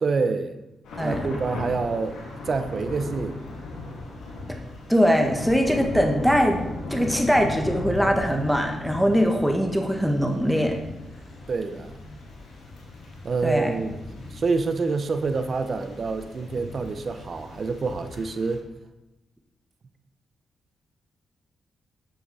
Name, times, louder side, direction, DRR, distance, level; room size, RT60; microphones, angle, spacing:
voice 1, 0.0-0.6 1.0-2.2 2.4-3.4 11.5-12.0 13.2-14.0 14.3-18.6, right 4 dB, 55° right, 9 dB, 1.0 m, -27 dB
Thunder / Rain, 0.8-18.6, left 2 dB, 85° left, 2.8 m, -37 dB
voice 2, 1.0-1.3 4.9-6.6 6.9-10.8 13.4-13.7, equal, ahead, 3 dB, 1.8 m, -22 dB
12.0 x 8.2 x 4.4 m, 0.98 s
cardioid pair, 60°, 0 cm